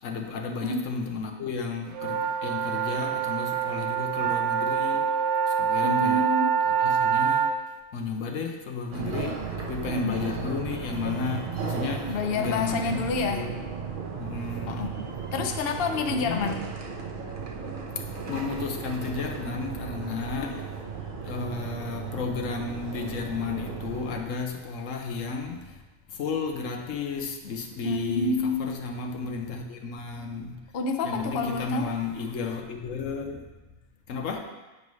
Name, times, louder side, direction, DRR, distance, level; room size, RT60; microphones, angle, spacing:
voice 1, 0.0-5.1 5.5-6.3 6.8-7.5 7.9-13.0 13.3-13.5 14.2-14.9 16.1-16.6 17.9-20.8 21.2-25.8 26.1-30.6 31.0-33.5 34.1-34.4, left 5 dB, 90° left, 3 dB, 1.2 m, -33 dB
sound 1, 1.9-7.5, right 7 dB, 85° right, 1.1 m, -25 dB
voice 2, 5.8-6.5 9.9-10.2 12.1-13.5 14.7-15.0 15.3-16.6 27.8-28.7 30.7-31.9, left 3 dB, 55° left, 4 dB, 0.8 m, -28 dB
sound 2, 8.9-24.2, right 6 dB, 50° right, 0.9 m, -35 dB
9.4 x 5.3 x 3.1 m, 1.1 s
omnidirectional pair, 1.3 m